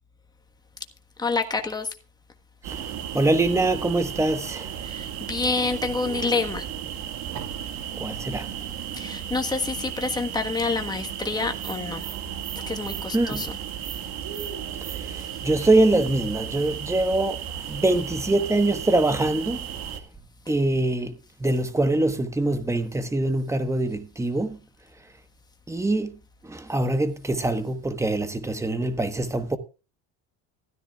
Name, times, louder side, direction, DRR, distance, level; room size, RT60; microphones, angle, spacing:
voice 1, 1.2-1.9 4.8-6.6 8.9-12.0 12.7-13.6, left 4 dB, 10° left, 1.4 m, -27 dB
sound 1, 2.6-20.0, right 9 dB, 75° right, 2.0 m, -34 dB
voice 2, 2.7-4.7 8.0-8.5 13.1-13.5 14.8-17.4 17.7-19.7 20.5-24.6 25.7-26.2 26.4-29.6, right 2 dB, 10° right, 1.2 m, -24 dB
15.5 x 13.5 x 2.4 m
cardioid pair, 140°, 36 cm